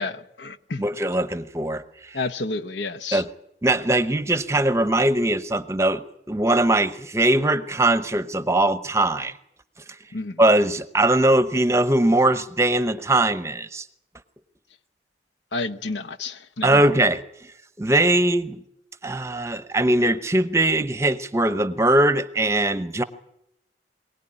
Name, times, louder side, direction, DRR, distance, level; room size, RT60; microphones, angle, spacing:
voice 1, 0.0-0.8 2.1-3.2 10.1-10.4 15.5-16.8, left 3 dB, 75° left, 1.0 m, -30 dB
voice 2, 0.8-1.8 3.1-3.3 3.6-9.3 10.4-13.8 16.6-17.2 17.8-18.6 19.0-23.0, right 1 dB, 15° right, 0.8 m, -21 dB
23.0 x 18.0 x 10.0 m
head